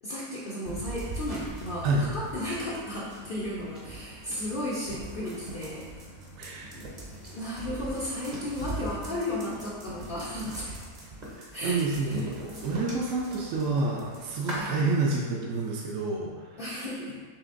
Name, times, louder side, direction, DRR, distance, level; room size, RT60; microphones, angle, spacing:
voice 1, 0.0-5.9 6.7-6.9 7.3-10.8 11.5-12.2 14.5-14.8 16.6-17.1, left 1 dB, 60° left, -7 dB, 0.5 m, -34 dB
sound 1, 0.6-14.6, right 1 dB, 40° right, 0.7 m, -41 dB
voice 2, 6.4-6.7 11.6-16.6, right 3 dB, 70° right, -3 dB, 0.9 m, -28 dB
5.8 x 3.2 x 2.5 m, 1.5 s
omnidirectional pair, 1.7 m